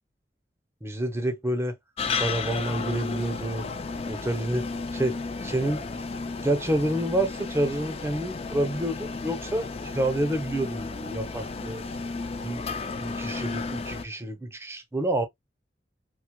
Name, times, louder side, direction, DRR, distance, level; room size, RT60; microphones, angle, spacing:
voice 1, 0.8-1.7 2.1-3.6 4.1-4.7 4.9-5.2 5.4-5.8 6.4-11.8 12.4-12.6 13.0-15.3, right 1 dB, 15° right, 0.7 m, -28 dB
sound 1, 2.0-14.1, left 4 dB, 35° left, 0.4 m, -33 dB
4.5 x 2.1 x 2.2 m
head